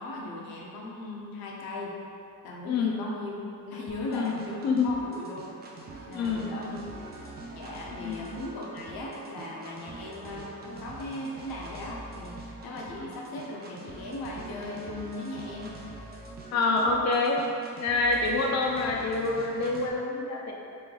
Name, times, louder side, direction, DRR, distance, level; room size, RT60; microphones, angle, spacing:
voice 1, 0.0-1.9 2.4-3.4 3.7-5.6 6.1-6.8 7.5-15.7, left 2 dB, 80° left, -3 dB, 0.8 m, -38 dB
voice 2, 2.6-3.0 4.1-4.4 4.6-4.9 6.1-6.5 7.9-8.2 16.5-17.4 17.8-20.5, left 3 dB, 50° left, 0 dB, 0.5 m, -26 dB
sound 1, 3.9-19.9, right 2 dB, 30° right, 0.4 m, -44 dB
3.3 x 3.2 x 3.8 m, 2.4 s
cardioid pair, 170°, 36 cm